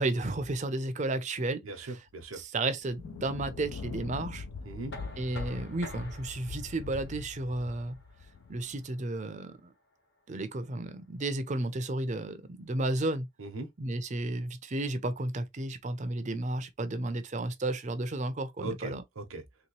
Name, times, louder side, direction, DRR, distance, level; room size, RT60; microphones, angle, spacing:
voice 1, 0.0-1.6 2.4-4.5 5.2-8.0 8.5-9.7 10.3-13.3 13.8-19.0, right 2 dB, 35° right, 0.5 m, -33 dB
voice 2, 1.6-2.4 4.6-4.9 13.4-13.7 18.6-19.4, right 2 dB, 85° right, 0.8 m, -39 dB
sound 1, 2.2-2.3 2.8-8.9, left 4 dB, 85° left, 0.4 m, -42 dB
Knock, 4.9-10.7, left 1 dB, 55° left, 1.2 m, -49 dB
3.2 x 2.9 x 3.0 m
head